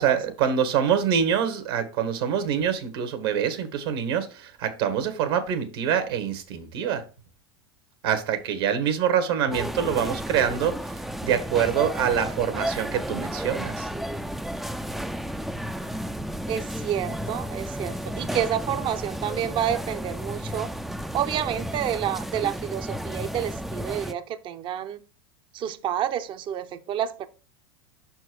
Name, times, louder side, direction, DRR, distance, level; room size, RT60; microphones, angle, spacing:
voice 1, 0.0-7.0 8.0-13.9, right 8 dB, 70° right, 1.7 m, -25 dB
sound 1, 9.5-24.1, equal, ahead, 0.4 m, -33 dB
voice 2, 16.5-20.7 21.1-25.0 25.5-27.3, right 10 dB, 40° right, 0.7 m, -29 dB
6.1 x 4.5 x 4.6 m
hypercardioid pair, 100°, 13 cm